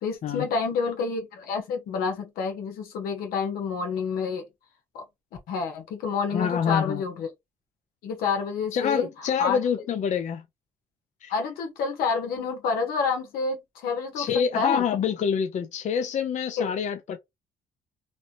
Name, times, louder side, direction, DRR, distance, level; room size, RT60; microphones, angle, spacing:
voice 1, 0.0-4.4 4.9-5.0 5.5-7.3 8.0-9.1 9.4-9.6 11.3-14.8 16.6-16.7, left 5 dB, 85° left, 1.2 m, -28 dB
voice 2, 6.3-7.0 8.7-10.4 11.2-11.3 14.2-17.2, left 7 dB, 55° left, 0.5 m, -26 dB
3.2 x 2.6 x 2.8 m
cardioid pair, 90°, 15 cm